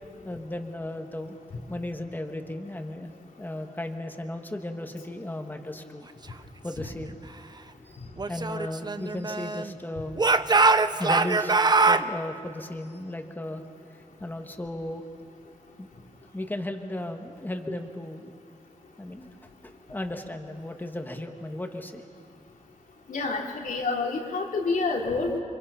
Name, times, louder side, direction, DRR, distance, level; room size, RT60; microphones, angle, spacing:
voice 1, 0.2-1.4 1.7-6.1 6.6-7.2 7.8-10.2 11.0-13.6 14.2-15.0 15.8-16.0 16.3-18.3 19.0-19.3 19.6-22.0, left 1 dB, 15° left, 4 dB, 1.7 m, -35 dB
Speech / Shout, 8.2-9.7 10.2-12.1, right 3 dB, 30° right, 0.7 m, -22 dB
voice 2, 23.1-25.4, left 3 dB, 80° left, -1 dB, 3.3 m, -28 dB
30.0 x 24.5 x 5.7 m, 2.3 s
wide cardioid pair, 100°, 14 cm